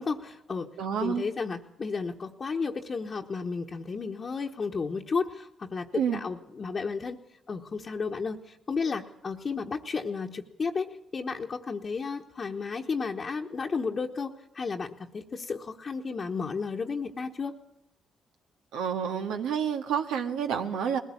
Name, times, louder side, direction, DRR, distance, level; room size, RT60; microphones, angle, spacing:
voice 1, 0.0-0.7 1.0-7.2 7.5-17.5, left 4 dB, 45° left, 0 dB, 1.2 m, -33 dB
voice 2, 0.8-1.2 5.9-6.2 18.7-21.0, right 7 dB, 90° right, 5 dB, 1.7 m, -29 dB
20.5 x 16.0 x 8.5 m, 0.83 s
cardioid pair, 70°, 0 cm